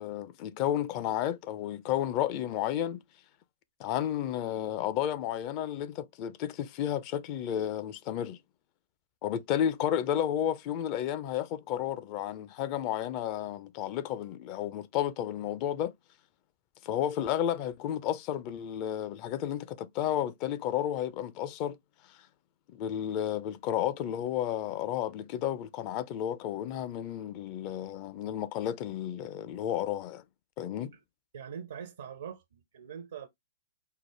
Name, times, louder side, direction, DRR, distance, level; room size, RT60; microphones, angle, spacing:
voice 1, 0.0-3.0 3.8-8.4 9.2-15.9 16.8-21.8 22.7-30.2 30.6-30.9, left 10 dB, 40° left, 0.5 m, -32 dB
voice 2, 31.3-33.3, right 8 dB, 65° right, 0.5 m, -43 dB
4.6 x 2.0 x 3.0 m
figure-of-eight pair, 110°, 0 cm